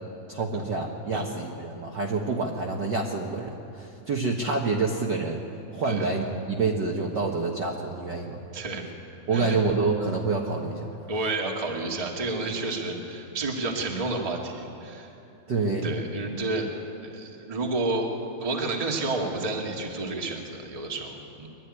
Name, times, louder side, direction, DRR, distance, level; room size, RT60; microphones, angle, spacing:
voice 1, 0.3-5.4 5.7-8.4 9.3-10.9 15.5-15.9, right 3 dB, 50° right, 0 dB, 1.3 m, -27 dB
voice 2, 8.5-8.8 9.3-9.6 11.1-15.1 15.8-16.7 17.1-18.1 18.4-21.5, right 2 dB, 15° right, 0 dB, 1.4 m, -30 dB
22.5 x 12.5 x 9.8 m, 2.8 s
omnidirectional pair, 3.6 m